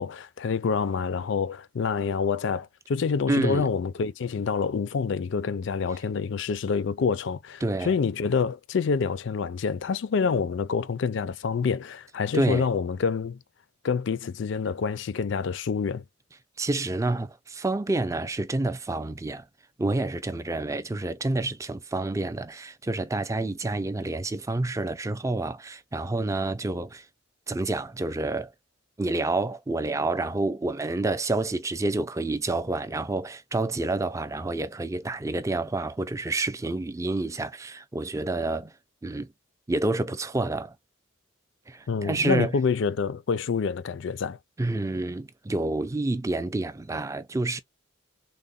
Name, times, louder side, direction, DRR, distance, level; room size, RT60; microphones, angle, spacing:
voice 1, 0.0-13.4 13.8-16.0 41.9-44.4, left 5 dB, 65° left, 0.4 m, -27 dB
voice 2, 3.3-3.6 7.6-7.9 12.3-12.7 16.6-19.4 19.8-27.1 27.5-28.5 29.0-38.7 39.0-39.3 39.7-40.8 41.7-42.6 44.6-47.6, right 2 dB, 15° right, 0.4 m, -28 dB
3.7 x 2.1 x 3.8 m
head